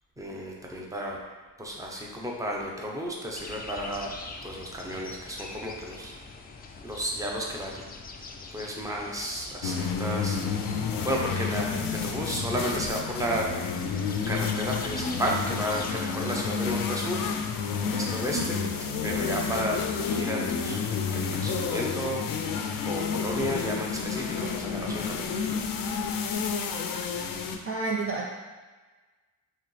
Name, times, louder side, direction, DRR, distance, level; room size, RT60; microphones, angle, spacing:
voice 1, 0.2-1.2 1.6-4.1 4.4-6.1 6.8-7.8 8.5-10.4 11.0-13.5 14.3-17.2 17.9-18.6 19.0-22.2 22.8-25.2, equal, 10° right, -2 dB, 0.7 m, -32 dB
sound 1, 3.4-16.9, left 3 dB, 30° left, 0.4 m, -44 dB
sound 2, 9.6-27.6, left 5 dB, 80° left, 0.5 m, -30 dB
voice 2, 27.7-28.3, right 4 dB, 40° right, -1 dB, 0.5 m, -29 dB
4.8 x 3.1 x 3.2 m, 1.3 s
cardioid pair, 115°, 34 cm